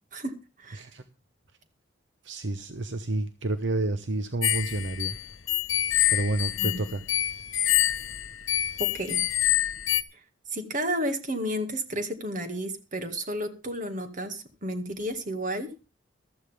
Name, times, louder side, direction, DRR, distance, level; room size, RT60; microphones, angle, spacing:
voice 1, 0.1-0.9 6.6-6.8 8.8-9.2 10.1-10.2 10.5-15.7, equal, 40° right, 7 dB, 2.1 m, -32 dB
voice 2, 0.7-1.0 2.2-5.2 6.1-7.0, right 2 dB, 65° right, 10 dB, 1.0 m, -29 dB
sound 1, 4.4-10.0, left 12 dB, 85° left, 1.1 m, -26 dB
14.5 x 13.5 x 3.5 m, 0.30 s
head